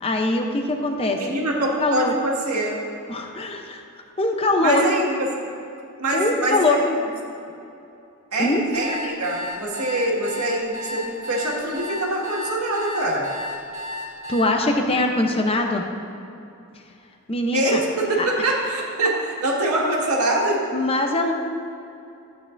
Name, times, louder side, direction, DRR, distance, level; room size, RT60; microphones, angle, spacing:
voice 1, 0.0-1.2 1.5-2.2 3.1-3.8 4.2-4.8 6.1-6.8 8.4-8.6 14.3-15.8 17.3-17.8 18.2-18.5 20.7-21.3, left 2 dB, 25° left, 3 dB, 0.6 m, -22 dB
voice 2, 1.2-2.8 4.6-5.3 6.0-6.8 8.3-13.3 17.5-20.6, right 2 dB, 85° right, -3 dB, 1.8 m, -24 dB
sound 1, 8.5-14.4, left 2 dB, 30° right, 1.5 m, -33 dB
13.0 x 8.6 x 2.6 m, 2.7 s
head